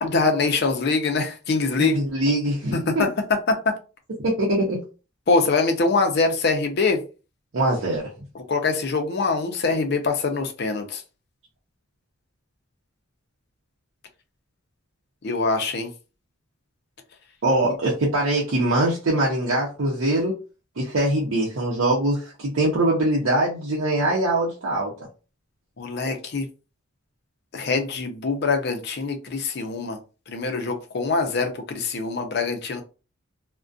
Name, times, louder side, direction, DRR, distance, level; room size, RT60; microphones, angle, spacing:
voice 1, 0.0-2.0 2.7-3.1 3.5-3.6 5.3-7.0 8.3-11.0 15.2-15.9 25.8-26.5 27.5-30.0 30.3-32.8, left 3 dB, 50° left, 0.5 m, -24 dB
voice 2, 1.8-3.1 4.2-4.8 7.5-8.1 17.4-20.3 20.8-24.9, right 1 dB, 75° right, 0.6 m, -22 dB
2.4 x 2.1 x 2.5 m
head